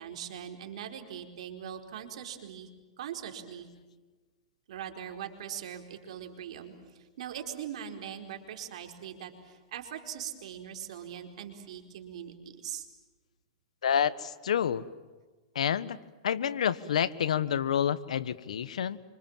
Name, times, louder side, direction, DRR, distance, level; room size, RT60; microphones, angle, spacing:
voice 1, 0.0-2.7 3.0-3.7 4.7-12.9, right 9 dB, 70° right, 4 dB, 4.5 m, -41 dB
voice 2, 13.8-14.8 15.5-16.0 16.2-19.0, left 8 dB, 90° left, 15 dB, 1.4 m, -28 dB
27.0 x 26.0 x 7.5 m, 1.3 s
hypercardioid pair, 145°, 4 cm